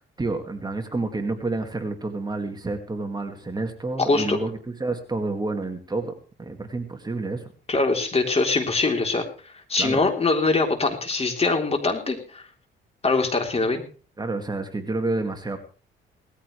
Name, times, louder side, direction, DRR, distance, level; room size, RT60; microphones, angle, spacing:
voice 1, 0.2-7.5 9.8-10.0 14.2-15.6, right 3 dB, 20° right, 5 dB, 2.2 m, -29 dB
voice 2, 4.0-4.4 7.7-9.3 9.7-12.4 13.0-13.8, left 3 dB, 30° left, 4 dB, 3.7 m, -23 dB
19.0 x 14.5 x 3.3 m, 0.38 s
cardioid pair, 90°, 20 cm